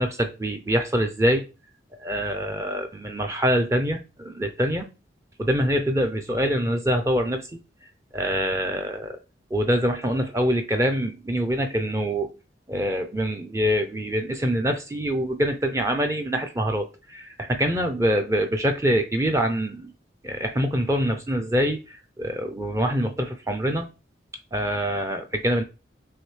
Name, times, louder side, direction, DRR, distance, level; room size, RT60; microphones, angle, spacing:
voice 1, 0.0-1.4 2.0-4.9 5.4-7.5 8.1-9.2 9.5-12.3 12.7-19.9 20.2-23.9 24.5-25.6, equal, 15° right, 0.4 m, -25 dB
6.4 x 2.6 x 3.2 m
head